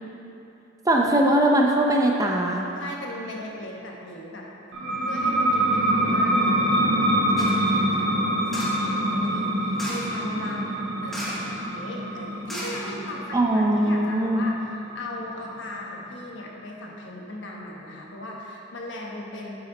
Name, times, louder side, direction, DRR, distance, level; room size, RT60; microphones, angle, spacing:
voice 1, 0.9-2.7 13.3-14.5, right 1 dB, 15° right, 0 dB, 0.6 m, -21 dB
voice 2, 2.8-4.5 5.0-19.5, left 1 dB, 65° left, -1 dB, 1.2 m, -38 dB
sound 1, 4.7-16.0, right 1 dB, 60° right, 1.2 m, -25 dB
sound 2, 7.4-7.7 8.5-8.9 9.7-10.2 11.1-11.6 11.8-11.9 12.5-13.3 13.8-13.9, equal, ahead, 1.1 m, -35 dB
9.5 x 6.2 x 3.9 m, 2.8 s
head